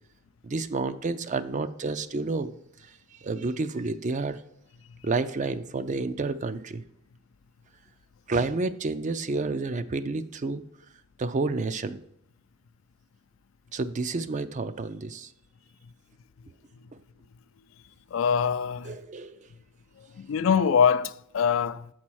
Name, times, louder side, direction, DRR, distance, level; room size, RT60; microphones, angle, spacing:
voice 1, 0.4-2.5 3.2-4.4 5.0-6.8 8.3-10.6 11.2-12.0 13.7-15.3 18.9-19.4, right 3 dB, 40° right, 0.4 m, -30 dB
voice 2, 18.1-19.0 20.0-21.9, left 7 dB, 75° left, 0.4 m, -24 dB
6.9 x 4.3 x 6.2 m
head